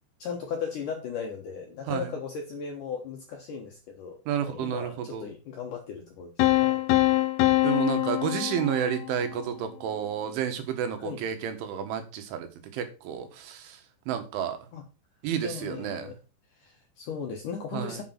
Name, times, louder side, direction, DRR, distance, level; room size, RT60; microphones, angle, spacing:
voice 1, 0.2-6.9 11.0-11.2 14.7-14.8 15.4-16.1 16.5-18.0, left 6 dB, 65° left, 2 dB, 2.0 m, -37 dB
voice 2, 4.3-5.3 7.6-13.8 14.1-14.6 15.2-16.1 17.7-18.0, right 9 dB, 80° right, 7 dB, 3.9 m, -31 dB
sound 1, 6.4-9.3, left 16 dB, 80° left, 2.3 m, -24 dB
8.5 x 6.5 x 5.9 m, 0.31 s
omnidirectional pair, 5.4 m